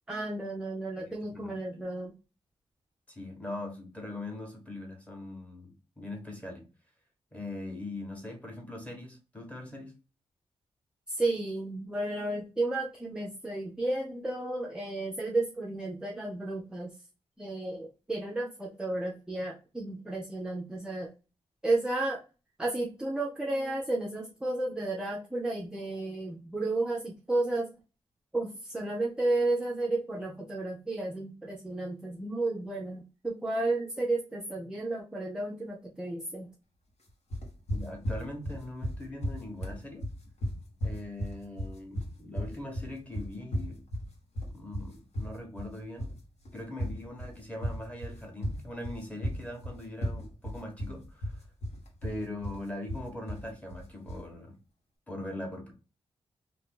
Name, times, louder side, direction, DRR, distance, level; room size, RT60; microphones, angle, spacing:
voice 1, 0.1-2.1 11.2-16.9 17.4-21.1 21.6-22.2 22.6-27.7 28.3-36.5, right 2 dB, 5° right, -2 dB, 0.4 m, -32 dB
voice 2, 1.0-1.6 3.1-6.6 7.3-9.9 37.7-40.0 40.8-43.8 44.5-46.1 46.5-51.4 52.0-54.5 55.1-55.7, left 1 dB, 10° left, 2 dB, 0.9 m, -41 dB
sound 1, 37.3-54.3, equal, 80° left, 1.2 m, -35 dB
2.6 x 2.5 x 3.6 m, 0.32 s
wide cardioid pair, 175°, 11 cm